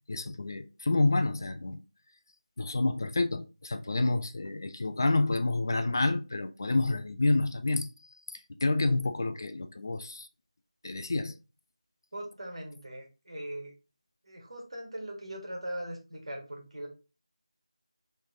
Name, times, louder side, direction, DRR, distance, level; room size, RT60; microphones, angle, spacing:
voice 1, 0.1-1.8 2.6-7.9 8.6-10.3 10.8-11.3, left 2 dB, 35° left, 0.3 m, -28 dB
voice 2, 12.1-13.7 14.2-16.9, right 1 dB, 60° right, 1.5 m, -40 dB
3.3 x 3.1 x 3.5 m
figure-of-eight pair, 170°, 3 cm